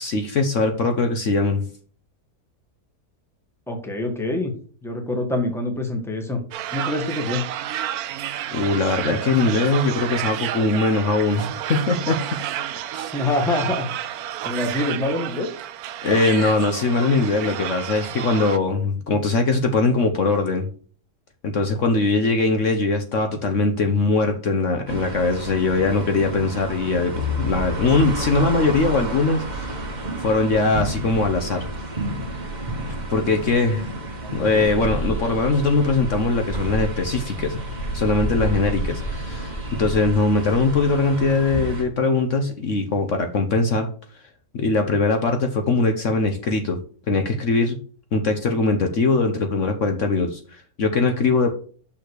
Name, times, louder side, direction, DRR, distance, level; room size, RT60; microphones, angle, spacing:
voice 1, 0.0-1.6 8.5-12.2 12.9-13.1 16.0-20.7 21.4-29.9 30.2-31.6 33.1-33.9 34.3-37.6 37.9-39.5 39.8-43.9 44.5-46.8 47.1-47.8 48.1-51.5, left 3 dB, 55° left, 5 dB, 1.2 m, -21 dB
voice 2, 3.7-4.5 4.8-6.4 6.7-7.5 13.1-13.9 14.4-15.5 34.2-34.7, left 2 dB, ahead, 3 dB, 1.5 m, -25 dB
sound 1, 6.5-18.6, right 11 dB, 80° right, 1.1 m, -30 dB
sound 2, 24.9-41.8, right 1 dB, 30° right, 1.2 m, -31 dB
sound 3, 34.6-40.1, equal, 40° left, 3.2 m, -30 dB
6.3 x 5.8 x 6.4 m, 0.43 s
omnidirectional pair, 1.6 m